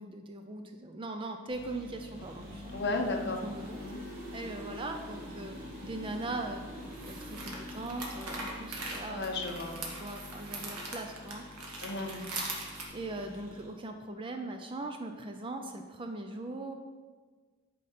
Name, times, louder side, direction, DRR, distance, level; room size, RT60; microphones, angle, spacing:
voice 1, 0.0-2.8 3.4-3.8 4.3-5.6 5.8-6.6 7.1-9.3 9.9-11.8 12.9-16.7, right 2 dB, 25° right, 5 dB, 0.4 m, -40 dB
sound 1, 1.5-13.7, left 1 dB, 60° right, 2.3 m, -45 dB
voice 2, 2.7-3.4 3.8-4.0 9.1-9.8 11.8-12.2, left 2 dB, 50° left, 3 dB, 0.9 m, -34 dB
sound 2, 4.2-4.3 6.8-12.9, right 2 dB, 85° right, 1.4 m, -41 dB
8.4 x 5.0 x 4.3 m, 1.5 s
head